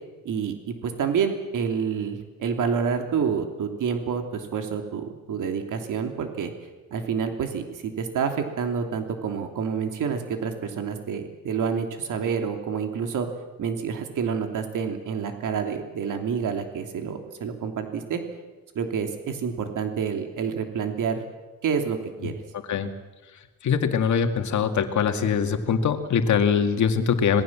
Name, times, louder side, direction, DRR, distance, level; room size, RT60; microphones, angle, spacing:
voice 1, 0.2-6.5 6.9-13.3 13.6-18.2 18.7-21.2 21.6-22.3, right 6 dB, 65° right, 5 dB, 3.0 m, -28 dB
voice 2, 23.6-27.4, left 6 dB, 60° left, 7 dB, 2.2 m, -22 dB
26.5 x 20.5 x 7.4 m, 1.2 s
cardioid pair, 160°, 33 cm